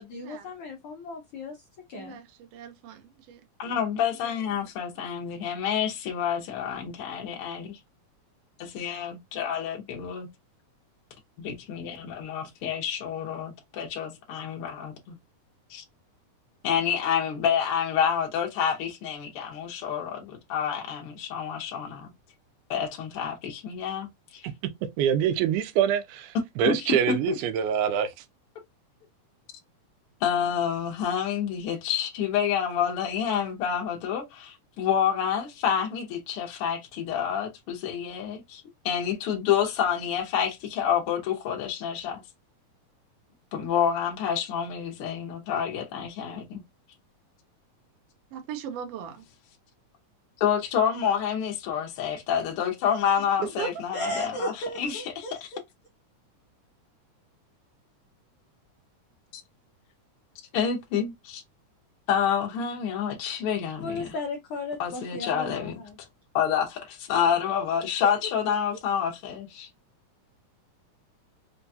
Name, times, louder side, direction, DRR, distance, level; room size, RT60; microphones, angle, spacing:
voice 1, 0.0-1.6 1.9-2.2 53.9-55.3 63.8-66.0, left 1 dB, 90° left, 1.2 m, -35 dB
voice 2, 1.9-3.7 4.2-4.4 5.0-5.1 48.3-49.3 53.2-53.7, right 8 dB, 70° right, 1.5 m, -38 dB
voice 3, 3.6-7.8 8.6-10.3 11.4-15.2 15.7-15.8 16.6-22.1 22.7-24.4 26.7-27.4 30.2-42.2 43.5-46.6 50.4-54.5 54.8-55.4 59.3-59.4 60.5-61.4 62.1-64.1 64.8-65.7 66.3-69.7, left 8 dB, 70° left, 1.3 m, -28 dB
voice 4, 25.0-28.1, right 9 dB, 85° right, 2.1 m, -25 dB
4.9 x 2.3 x 2.6 m
omnidirectional pair, 3.6 m